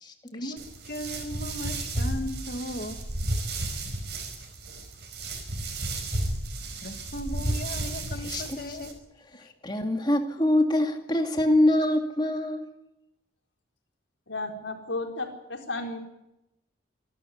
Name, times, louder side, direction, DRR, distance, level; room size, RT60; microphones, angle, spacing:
voice 1, 0.3-3.0 6.8-9.0 9.4-9.5, equal, 50° left, 6 dB, 2.5 m, -37 dB
sound 1, 0.6-8.9, right 1 dB, 60° right, 5.3 m, -33 dB
voice 2, 9.6-12.6, left 1 dB, 25° left, 5 dB, 2.3 m, -24 dB
voice 3, 14.3-16.0, left 2 dB, 75° left, 3 dB, 4.3 m, -33 dB
26.0 x 12.5 x 9.8 m, 0.88 s
head